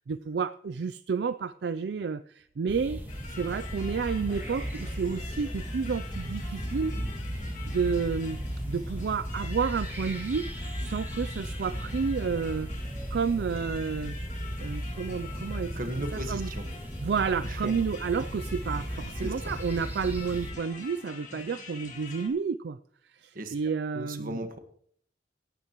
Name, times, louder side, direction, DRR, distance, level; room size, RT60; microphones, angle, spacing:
voice 1, 0.1-3.0 3.3-7.0 7.6-8.4 8.7-12.7 13.1-14.2 14.6-15.8 16.3-16.5 17.0-22.8 23.1-24.4, right 5 dB, 70° right, 13 dB, 0.4 m, -30 dB
sound 1, 2.7-20.5, equal, 10° right, 2.0 m, -36 dB
sound 2, 3.1-22.3, left 4 dB, 45° left, 2.3 m, -45 dB
voice 2, 15.8-16.7 17.4-17.7 19.1-19.5 23.3-23.6 23.9-24.6, right 1 dB, 50° right, 7 dB, 1.5 m, -36 dB
17.0 x 12.0 x 3.0 m, 0.62 s
head